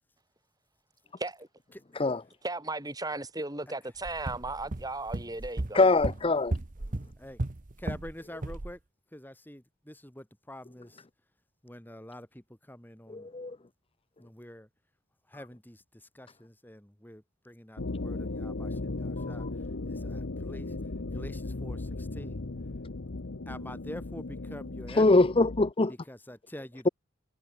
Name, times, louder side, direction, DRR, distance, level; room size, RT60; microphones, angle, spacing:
voice 1, 1.2-1.5 2.4-5.9, right 2 dB, 20° right, 4.8 m, -36 dB
sound 1, 4.0-8.1 8.4-8.7, right 2 dB, 40° right, 0.9 m, -35 dB
voice 2, 5.7-6.5 13.1-13.5 19.4-19.5 25.0-25.9, left 2 dB, 25° left, 0.6 m, -23 dB
voice 3, 7.8-8.8 9.1-11.0 11.6-13.3 14.2-14.7 15.3-19.5 19.9-20.8 21.1-22.4 23.5-25.3 25.9-26.9, left 1 dB, 10° left, 2.1 m, -46 dB
sound 2, 17.8-25.7, left 2 dB, 60° left, 0.9 m, -36 dB
head